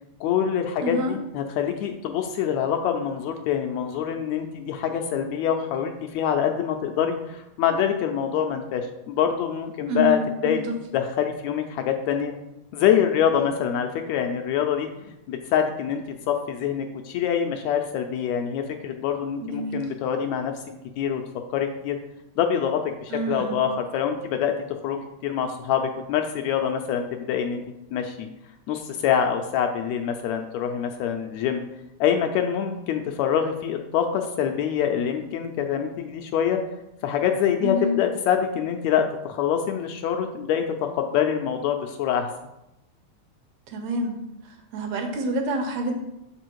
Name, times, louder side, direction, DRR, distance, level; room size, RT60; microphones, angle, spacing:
voice 1, 0.2-10.7 10.9-12.3 12.7-20.5 21.0-21.2 21.5-22.0 22.4-27.6 27.9-28.3 28.7-31.6 32.0-36.6 37.0-42.3, left 8 dB, 80° left, 5 dB, 1.7 m, -25 dB
voice 2, 0.8-1.2 9.9-10.6 19.4-19.9 23.1-23.6 37.6-38.0 43.7-44.2 44.4-45.9, right 1 dB, 75° right, 3 dB, 2.2 m, -28 dB
6.8 x 4.9 x 4.6 m, 0.89 s
omnidirectional pair, 3.4 m